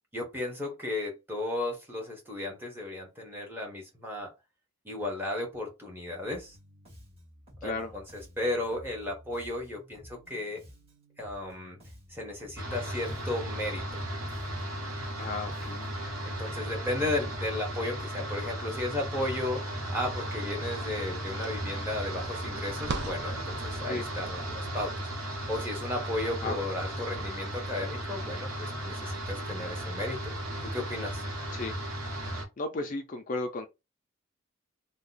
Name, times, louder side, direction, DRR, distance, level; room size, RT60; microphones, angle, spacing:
voice 1, 0.1-4.3 4.8-6.6 7.6-10.6 11.2-11.8 12.1-13.9 16.3-25.1 25.5-30.3 30.6-31.2, left 1 dB, 10° right, 1.0 m, -34 dB
Bass guitar, 6.2-16.1, equal, 25° right, 1.4 m, -53 dB
voice 2, 7.6-7.9 15.2-15.9 23.8-24.0 26.4-26.6 31.5-31.7 32.6-33.7, left 2 dB, 40° left, 0.4 m, -34 dB
sound 1, 12.6-32.4, equal, 75° right, 1.1 m, -36 dB
sound 2, 20.7-26.8, right 3 dB, 50° right, 0.5 m, -42 dB
2.8 x 2.2 x 3.9 m
head